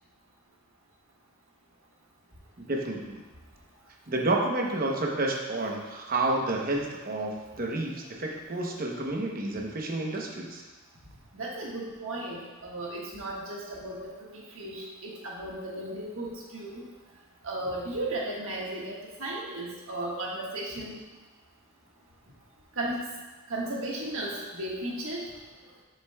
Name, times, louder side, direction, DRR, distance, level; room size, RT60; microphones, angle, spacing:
voice 1, 2.6-3.2 4.1-10.7, right 2 dB, 40° right, 0 dB, 0.8 m, -30 dB
voice 2, 11.3-16.8 17.4-18.9 19.2-20.9 22.8-23.0 23.5-25.2, right 1 dB, 70° right, -4 dB, 1.5 m, -35 dB
7.9 x 6.6 x 2.3 m, 1.2 s
head